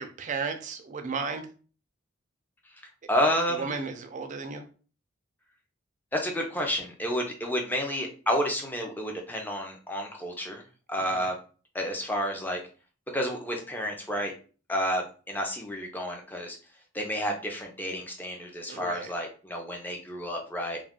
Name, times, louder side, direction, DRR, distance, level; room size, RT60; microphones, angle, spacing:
voice 1, 0.0-1.4 3.5-4.6 11.0-11.3 18.7-19.1, right 4 dB, 40° right, 6 dB, 0.4 m, -34 dB
voice 2, 3.1-3.7 6.1-10.6 10.9-11.4 11.7-12.6 13.1-14.3 14.7-16.6 16.9-20.8, equal, 10° left, 1 dB, 0.5 m, -30 dB
2.4 x 2.3 x 3.6 m, 0.38 s
head